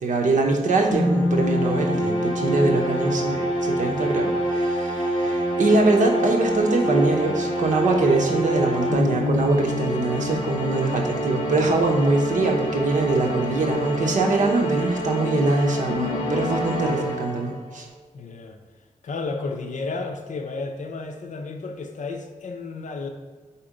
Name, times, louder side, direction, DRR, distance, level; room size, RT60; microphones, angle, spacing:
voice 1, 0.0-17.9, right 2 dB, 75° right, 1 dB, 0.9 m, -23 dB
sound 1, 0.9-17.6, equal, 40° left, 1.4 m, -26 dB
voice 2, 5.2-5.6 18.1-18.6 19.0-23.1, left 3 dB, 70° left, 5 dB, 0.7 m, -32 dB
4.4 x 4.3 x 5.0 m, 1.4 s
wide cardioid pair, 170°, 13 cm